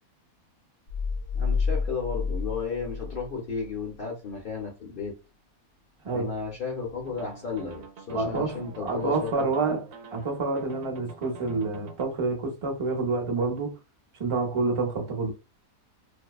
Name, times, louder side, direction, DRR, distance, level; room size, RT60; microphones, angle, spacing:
sound 1, 0.9-3.9, left 5 dB, 85° left, 0.5 m, -29 dB
voice 1, 1.3-5.1 6.1-9.5, left 5 dB, 50° left, 0.7 m, -34 dB
sound 2, 7.1-12.1, right 4 dB, 70° right, 0.9 m, -46 dB
voice 2, 8.1-9.8 10.1-13.8 14.2-15.3, right 3 dB, 35° right, 0.5 m, -28 dB
2.6 x 2.1 x 2.3 m
omnidirectional pair, 1.6 m